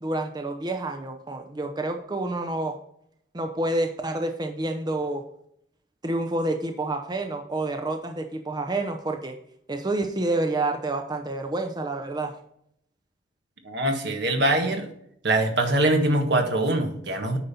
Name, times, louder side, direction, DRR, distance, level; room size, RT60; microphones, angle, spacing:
voice 1, 0.0-2.8 3.3-5.2 6.0-9.4 9.7-12.3, right 2 dB, 25° right, 5 dB, 0.7 m, -28 dB
voice 2, 13.6-14.9 15.2-17.4, right 1 dB, 70° right, 4 dB, 1.5 m, -23 dB
9.1 x 5.4 x 4.2 m, 0.72 s
head